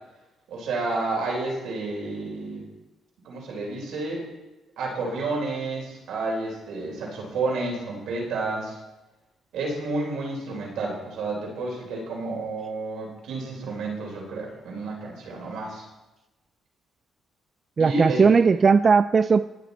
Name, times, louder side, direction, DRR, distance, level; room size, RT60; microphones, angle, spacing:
voice 1, 0.5-2.6 3.2-4.2 4.8-8.8 9.5-15.8 17.8-18.4, right 3 dB, 85° right, 4.0 m, -30 dB
voice 2, 17.8-19.5, right 5 dB, 40° right, 0.3 m, -18 dB
21.0 x 7.3 x 4.2 m
cardioid pair, 90°, 0 cm